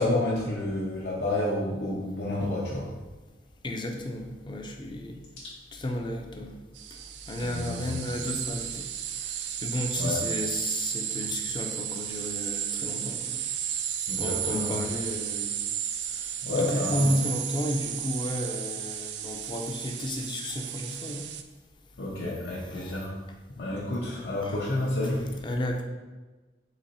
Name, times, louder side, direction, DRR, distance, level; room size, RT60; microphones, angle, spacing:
voice 1, 0.0-2.9 7.4-7.9 9.9-10.2 14.1-14.7 16.4-17.1 22.0-23.1 23.6-25.3, left 1 dB, 70° left, -6 dB, 0.7 m, -29 dB
voice 2, 3.6-5.2 5.7-6.5 6.9-7.0 7.3-8.9 9.3-13.4 14.2-15.6 16.1-16.3 16.6-21.3 22.7-23.0 24.4-24.5 25.4-25.8, left 1 dB, 25° left, 3 dB, 0.5 m, -32 dB
sound 1, 6.8-21.4, right 9 dB, 80° right, 0.3 m, -33 dB
4.0 x 3.0 x 4.1 m, 1.2 s
head